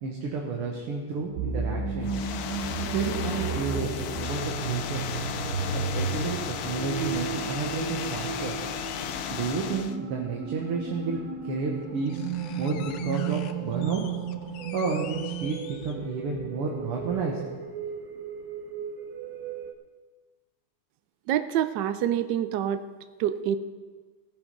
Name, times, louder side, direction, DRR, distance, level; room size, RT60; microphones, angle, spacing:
voice 1, 0.0-2.1 2.9-5.0 5.7-8.6 9.3-12.3 12.6-14.0 14.7-17.4, right 4 dB, 90° right, 0 dB, 2.2 m, -31 dB
sound 1, 1.4-19.7, right 6 dB, 55° right, 1.3 m, -34 dB
sound 2, 2.0-10.0, left 9 dB, 90° left, 0.8 m, -35 dB
sound 3, 7.0-9.4 10.8-10.9 11.5-11.6 11.8-16.3 16.7-16.8, left 10 dB, 75° left, 1.4 m, -46 dB
voice 2, 21.3-22.8 23.2-23.6, right 10 dB, 75° right, 11 dB, 1.0 m, -26 dB
18.0 x 7.1 x 5.2 m, 1.4 s
omnidirectional pair, 2.4 m